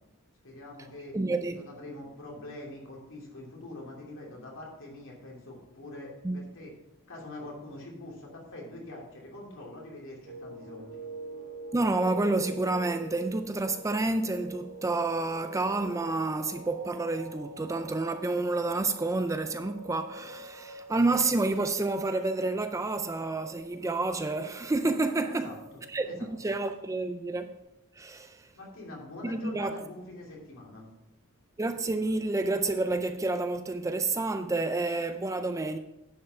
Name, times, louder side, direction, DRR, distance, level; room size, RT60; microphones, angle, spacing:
voice 1, 0.4-1.2 1.5-6.7 7.1-10.9 25.3-25.6 26.0-26.3 28.5-30.8, left 1 dB, 60° left, 3.0 m, -44 dB
voice 2, 1.1-1.6 6.2-6.4 11.7-25.5 25.9-27.6 28.0-28.5 29.2-29.7 31.6-35.8, right 2 dB, 15° right, 0.4 m, -29 dB
sound 1, 10.2-27.6, right 2 dB, 50° right, 1.8 m, -46 dB
10.5 x 5.6 x 5.6 m
head